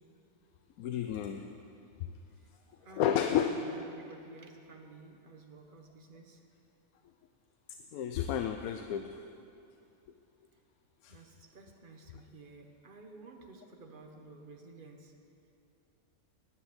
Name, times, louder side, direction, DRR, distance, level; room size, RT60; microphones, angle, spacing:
voice 1, 0.8-1.5 2.0-2.1 2.9-3.6 7.7-9.2 11.0-11.1, left 9 dB, 80° left, 6 dB, 1.1 m, -32 dB
voice 2, 2.8-6.4 11.1-15.1, right 3 dB, 40° right, 3 dB, 1.2 m, -52 dB
10.5 x 9.3 x 7.8 m, 2.6 s
omnidirectional pair, 1.5 m